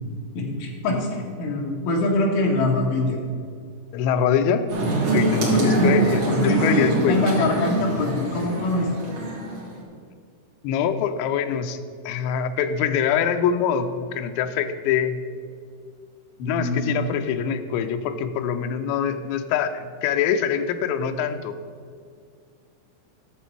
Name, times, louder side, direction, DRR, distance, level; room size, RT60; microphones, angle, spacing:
voice 1, 0.3-3.2 5.5-6.0 6.3-8.9 16.4-17.1, left 2 dB, 70° left, -1 dB, 3.4 m, -24 dB
voice 2, 3.9-4.7 5.1-7.2 10.6-11.8 12.1-15.2 16.5-21.6, left 8 dB, 85° left, 8 dB, 2.5 m, -24 dB
sound 1, 4.7-9.7, right 2 dB, 45° right, 1.7 m, -24 dB
11.0 x 6.9 x 4.5 m, 2.1 s
omnidirectional pair, 5.6 m